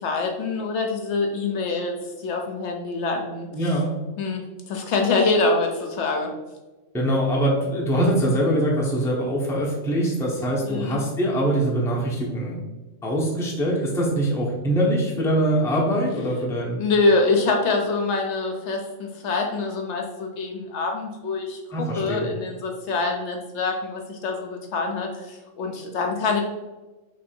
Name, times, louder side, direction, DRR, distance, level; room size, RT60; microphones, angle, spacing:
voice 1, 0.0-3.5 4.2-6.3 10.7-11.0 16.8-26.4, left 3 dB, 70° left, 2 dB, 0.8 m, -25 dB
voice 2, 3.5-3.9 6.9-12.6 13.0-16.8 21.7-22.3, right 1 dB, 5° left, -4 dB, 0.6 m, -23 dB
3.2 x 2.7 x 4.2 m, 1.2 s
omnidirectional pair, 1.3 m